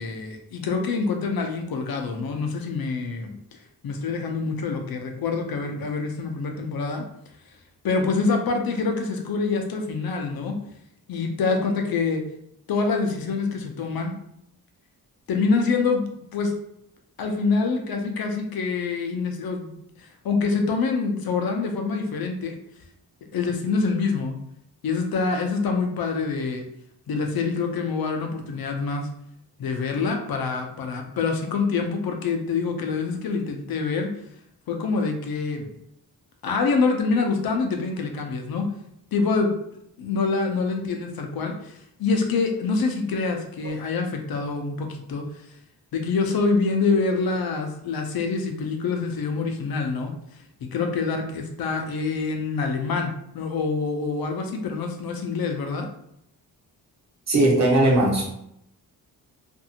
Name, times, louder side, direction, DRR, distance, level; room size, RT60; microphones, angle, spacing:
voice 1, 0.0-3.3 3.8-7.0 7.8-10.5 11.1-12.2 12.7-14.1 15.3-16.0 16.3-16.5 17.2-19.7 20.0-22.6 23.3-24.4 24.8-26.6 27.1-29.1 29.6-34.1 34.7-35.7 36.4-38.6 39.1-39.5 40.0-41.7 42.0-45.2 45.9-50.1 50.6-55.9, left 4 dB, 70° left, 3 dB, 0.6 m, -26 dB
voice 2, 57.3-58.2, right 1 dB, 45° right, -2 dB, 1.0 m, -18 dB
2.6 x 2.4 x 2.7 m, 0.75 s
cardioid pair, 95°, 38 cm